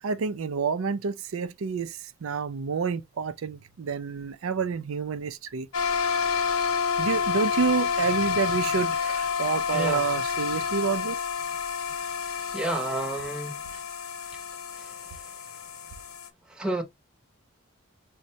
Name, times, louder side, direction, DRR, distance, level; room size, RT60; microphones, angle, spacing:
voice 1, 0.0-5.7 7.0-11.2 13.7-13.8, right 5 dB, 75° right, 0.4 m, -29 dB
sound 1, 5.7-16.3, left 6 dB, 90° left, 0.6 m, -29 dB
voice 2, 12.5-13.6 14.8-14.9 16.5-16.8, right 1 dB, 5° right, 0.7 m, -30 dB
6.1 x 2.2 x 2.7 m
head